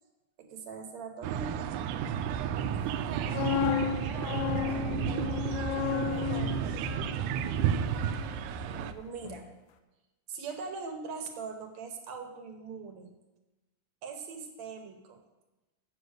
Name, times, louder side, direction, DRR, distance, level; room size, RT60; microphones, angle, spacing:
voice 1, 0.4-1.6 2.5-3.0 3.3-3.5 8.6-9.4 10.3-13.1 14.0-15.2, right 5 dB, 65° right, 5 dB, 2.3 m, -42 dB
sound 1, 1.2-8.9, right 8 dB, 85° right, 2.1 m, -32 dB
sound 2, 3.0-8.9 9.2-9.5, left 9 dB, 85° left, 2.1 m, -34 dB
voice 2, 4.0-7.1, right 2 dB, 50° right, -2 dB, 1.2 m, -47 dB
7.7 x 7.3 x 8.1 m, 1.1 s
omnidirectional pair, 3.5 m